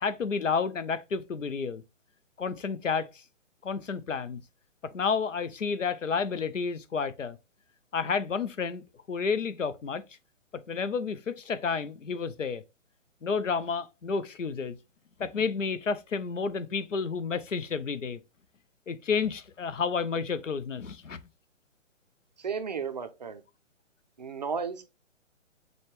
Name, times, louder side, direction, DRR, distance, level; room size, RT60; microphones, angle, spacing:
voice 1, 0.0-1.8 2.4-3.2 3.6-4.4 4.9-7.4 7.9-10.0 10.5-12.6 13.2-14.8 15.2-18.2 18.9-21.2, left 5 dB, 80° left, 0.7 m, -30 dB
voice 2, 22.4-23.4 24.2-24.9, right 6 dB, 35° right, 0.4 m, -34 dB
6.3 x 2.2 x 3.0 m
figure-of-eight pair, 130°, 38 cm